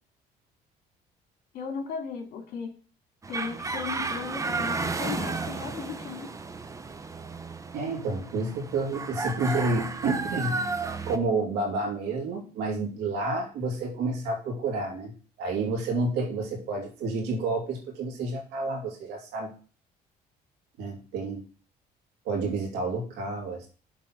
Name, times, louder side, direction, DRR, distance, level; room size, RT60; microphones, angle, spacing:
voice 1, 1.5-2.8 3.3-6.3, left 5 dB, 70° left, 3 dB, 2.5 m, -36 dB
sound 1, 3.2-11.2, right 3 dB, 20° right, 0.7 m, -33 dB
voice 2, 7.7-10.7 11.0-15.1 15.4-19.5 20.8-21.5 22.2-23.7, right 3 dB, 85° right, 0 dB, 3.0 m, -30 dB
7.5 x 3.8 x 6.1 m, 0.38 s
cardioid pair, 110°, 17 cm